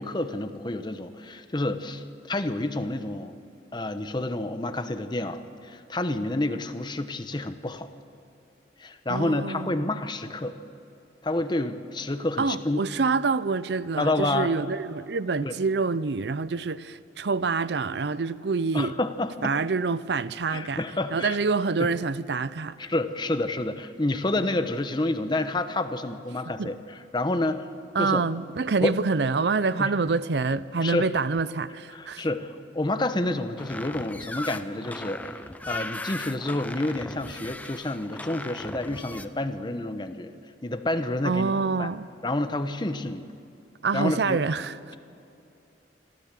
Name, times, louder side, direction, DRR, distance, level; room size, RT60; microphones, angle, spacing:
voice 1, 0.0-3.4 3.7-7.9 8.8-10.6 11.2-12.8 14.0-14.5 15.4-15.5 18.7-19.6 20.5-21.4 21.8-21.9 22.8-27.7 28.0-28.2 28.8-28.9 29.8-29.9 30.8-31.1 31.9-35.4 35.7-40.3 40.6-41.5 41.8-41.9 42.2-43.2 43.9-44.4, left 2 dB, 25° left, 0.9 m, -29 dB
voice 2, 9.1-9.8 12.4-19.0 19.4-20.8 21.1-22.8 26.6-26.7 27.9-32.3 41.2-42.1 43.8-45.0, right 4 dB, 65° right, 0.6 m, -26 dB
sound 1, 33.6-39.3, left 2 dB, 10° left, 0.6 m, -38 dB
25.5 x 13.5 x 7.5 m
head